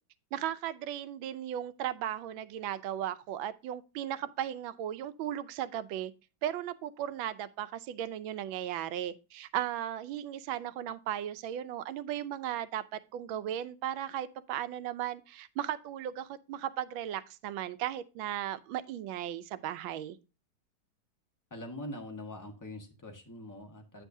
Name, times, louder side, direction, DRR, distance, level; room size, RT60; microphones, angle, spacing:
voice 1, 0.3-6.1 6.4-20.2, right 11 dB, 90° right, 1.4 m, -36 dB
voice 2, 21.5-24.0, left 1 dB, 10° left, 1.1 m, -43 dB
8.7 x 7.2 x 2.7 m
omnidirectional pair, 2.1 m